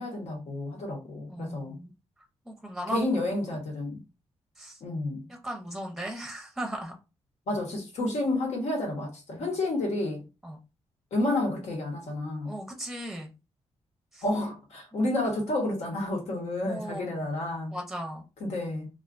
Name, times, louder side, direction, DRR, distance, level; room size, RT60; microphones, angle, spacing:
voice 1, 0.0-1.8 2.9-4.0 4.8-5.3 7.5-10.2 11.1-12.5 14.2-17.8 18.4-18.9, left 2 dB, 80° left, 1.0 m, -30 dB
voice 2, 1.3-1.9 2.5-3.2 4.6-4.8 5.3-6.9 9.4-9.5 10.4-10.6 12.4-13.3 14.1-14.2 14.9-15.0 16.6-17.3 17.7-18.2, right 1 dB, 5° right, 0.6 m, -37 dB
2.4 x 2.3 x 2.4 m
cardioid pair, 100°, 11 cm